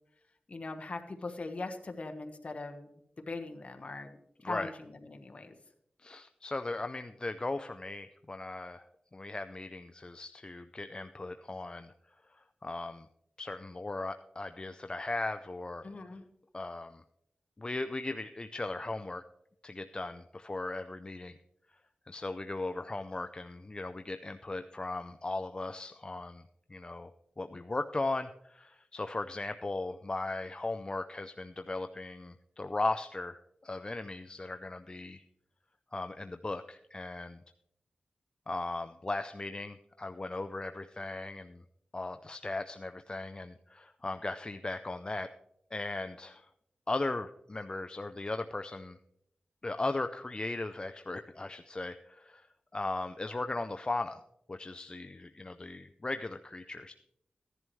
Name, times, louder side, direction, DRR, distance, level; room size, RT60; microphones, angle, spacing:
voice 1, 0.5-5.5 15.8-16.3, left 3 dB, 50° left, 6 dB, 1.2 m, -41 dB
voice 2, 6.0-8.9 9.1-11.9 12.3-13.1 13.4-15.9 16.5-17.0 17.6-19.2 19.6-21.4 22.1-26.4 26.7-27.1 27.4-35.2 35.9-37.4 38.5-41.6 41.9-45.3 45.7-46.5 46.9-49.0 49.6-52.5 52.7-54.2 54.5-56.9, left 2 dB, 30° left, 9 dB, 0.4 m, -37 dB
15.0 x 11.0 x 3.1 m, 0.77 s
wide cardioid pair, 95°, 3 cm